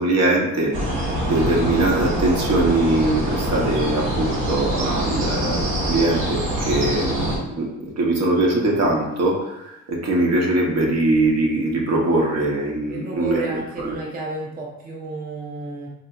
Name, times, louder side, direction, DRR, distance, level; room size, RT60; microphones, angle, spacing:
voice 1, 0.0-14.0, right 2 dB, 60° right, -1 dB, 0.9 m, -22 dB
sound 1, 0.7-7.4, right 1 dB, 85° right, 1.1 m, -24 dB
voice 2, 12.9-15.9, right 2 dB, 30° right, -2 dB, 0.6 m, -32 dB
3.8 x 2.6 x 2.3 m, 0.88 s
cardioid pair, 90°, 30 cm